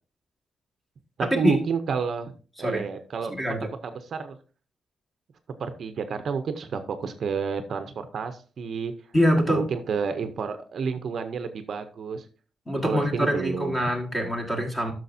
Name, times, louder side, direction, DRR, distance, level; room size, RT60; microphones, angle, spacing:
voice 1, 1.2-2.3 2.6-3.3 3.8-4.4 5.6-8.9 9.5-12.2 12.8-13.8, right 5 dB, 50° right, 9 dB, 0.6 m, -30 dB
voice 2, 3.3-3.7 9.1-9.6 12.7-14.9, equal, 10° left, 2 dB, 1.6 m, -24 dB
12.5 x 6.2 x 2.7 m, 0.37 s
wide cardioid pair, 180°, 0 cm